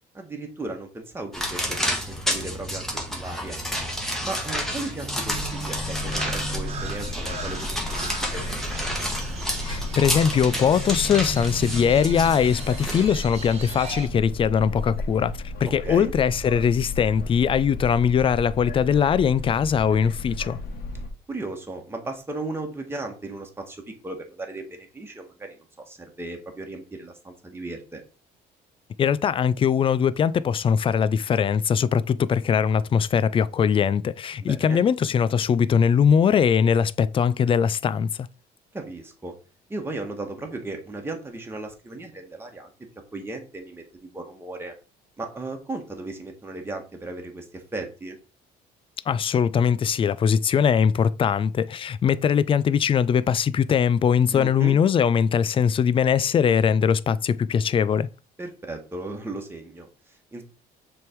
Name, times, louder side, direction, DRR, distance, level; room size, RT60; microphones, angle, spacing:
voice 1, 0.1-3.6 4.2-8.9 15.6-16.1 21.3-28.0 34.4-34.8 38.7-39.3 39.7-42.7 43.1-44.7 45.2-48.2 54.3-54.8 58.4-60.4, right 2 dB, 15° right, 1.6 m, -36 dB
sound 1, 1.3-13.1, equal, ahead, 1.7 m, -30 dB
Crow, 5.0-14.1, right 3 dB, 40° right, 1.2 m, -37 dB
sound 2, 5.2-21.1, left 2 dB, 65° left, 1.6 m, -34 dB
voice 2, 9.6-15.3 15.6-20.6 29.0-38.1 49.1-58.1, left 7 dB, 30° left, 0.3 m, -21 dB
6.2 x 3.5 x 4.5 m
cardioid pair, 110°, 17 cm